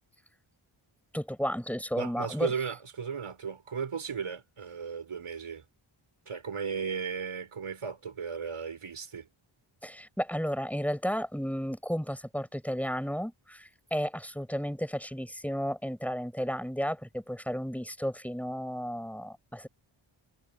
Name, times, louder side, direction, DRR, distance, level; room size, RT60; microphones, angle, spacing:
voice 1, 1.1-2.5 9.8-19.7, equal, 5° left, 5.4 m, -33 dB
voice 2, 2.0-5.6 6.3-9.3, right 6 dB, 75° right, 5.2 m, -35 dB
cardioid pair, 60°, 50 cm